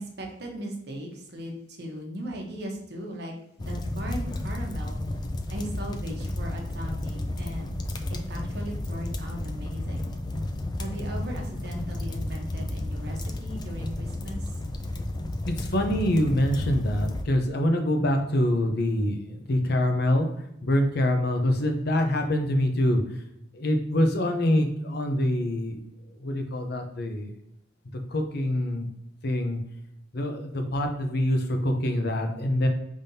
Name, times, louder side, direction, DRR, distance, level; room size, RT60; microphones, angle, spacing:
voice 1, 0.0-3.3 3.6-5.0 5.5-7.7 8.1-10.1 10.8-14.5, equal, 60° right, 1 dB, 1.0 m, -38 dB
sound 1, 3.6-17.3, left 1 dB, 20° left, 0.3 m, -32 dB
voice 2, 15.5-20.3 20.6-23.0 23.5-25.8 26.2-27.3 28.1-28.9 29.2-29.6 30.1-32.7, left 1 dB, 60° left, 5 dB, 0.7 m, -25 dB
5.3 x 3.6 x 2.7 m, 0.78 s
head